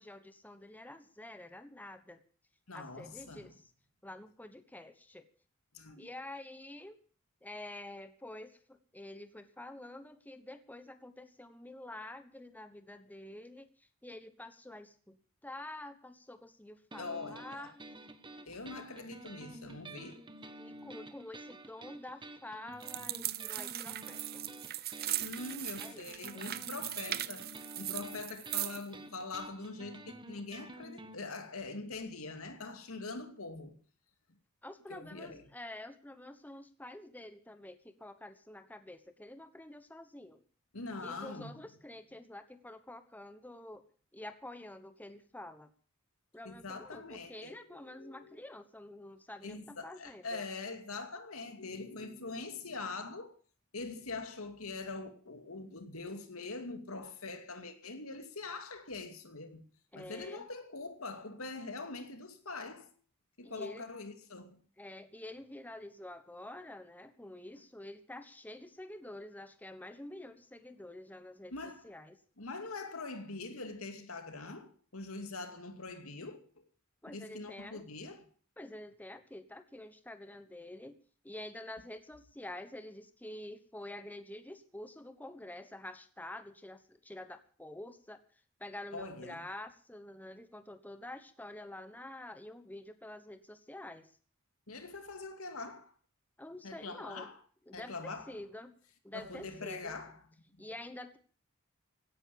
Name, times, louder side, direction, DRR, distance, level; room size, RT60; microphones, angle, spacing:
voice 1, 0.0-2.2 2.7-3.6 4.0-5.2 6.0-7.0 7.4-17.8 18.7-18.8 20.6-24.5 25.8-26.1 26.3-26.4 34.6-40.4 41.0-43.8 44.1-45.7 46.3-50.5 59.9-60.5 63.4-63.9 64.8-72.2 77.0-77.8 78.6-81.0 81.2-88.2 88.6-94.1 96.4-97.3 97.7-98.8 99.0-100.0 100.6-101.2, left 1 dB, 10° left, 1.1 m, -48 dB
voice 2, 2.7-3.5 5.7-6.1 17.0-17.7 18.5-20.2 25.1-27.5 27.8-33.8 34.9-35.4 40.7-41.7 46.4-48.4 49.4-53.3 53.7-59.6 59.9-62.9 63.4-64.6 71.5-71.9 72.4-76.4 77.1-78.3 88.9-89.4 94.7-95.9 96.6-97.4 97.7-98.4 99.1-100.2, left 3 dB, 85° left, 2.5 m, -43 dB
sound 1, 16.9-31.2, right 2 dB, 25° right, 1.2 m, -50 dB
sound 2, 22.8-28.9, right 14 dB, 50° right, 0.7 m, -39 dB
17.0 x 10.0 x 7.0 m
head